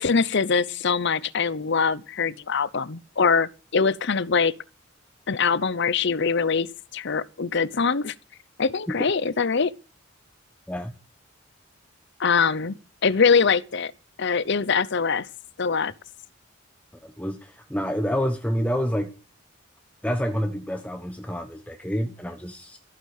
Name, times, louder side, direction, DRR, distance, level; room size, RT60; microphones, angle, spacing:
voice 1, 0.0-4.5 5.3-8.1 8.6-9.7 12.2-12.8 13.0-13.9 14.2-15.3 15.6-15.9, left 5 dB, 60° left, 0.8 m, -23 dB
voice 2, 17.0-19.1 20.0-22.8, equal, 5° left, 1.2 m, -28 dB
14.5 x 9.3 x 6.6 m
head